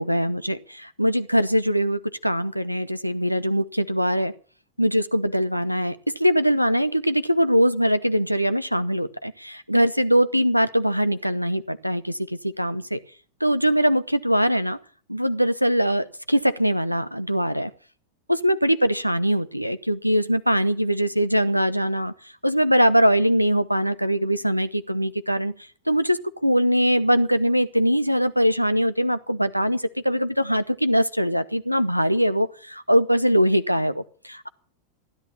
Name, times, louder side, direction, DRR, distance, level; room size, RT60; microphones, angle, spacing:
voice 1, 0.0-4.3 4.8-12.2 12.4-13.0 13.4-14.8 15.1-17.7 18.3-22.1 22.4-25.5 25.9-34.5, equal, 90° right, 14 dB, 0.8 m, -22 dB
16.0 x 10.5 x 7.3 m, 0.43 s
figure-of-eight pair, 90°, 0 cm